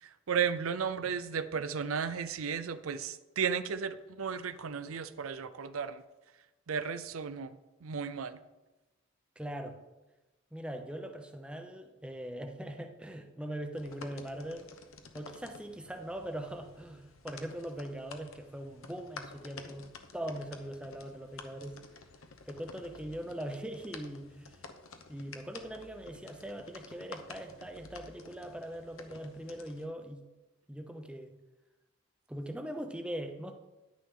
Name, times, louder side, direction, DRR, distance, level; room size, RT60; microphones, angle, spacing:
voice 1, 0.0-6.0 6.7-8.4, right 6 dB, 85° right, 13 dB, 0.5 m, -34 dB
voice 2, 9.4-9.8 10.5-14.7 15.1-19.9 20.1-21.8 22.5-24.6 25.1-30.2 30.7-31.4 32.3-33.5, right 1 dB, 5° right, 5 dB, 0.7 m, -41 dB
sound 1, 13.8-29.9, left 4 dB, 80° left, 1.0 m, -51 dB
10.0 x 9.9 x 3.7 m, 1.1 s
head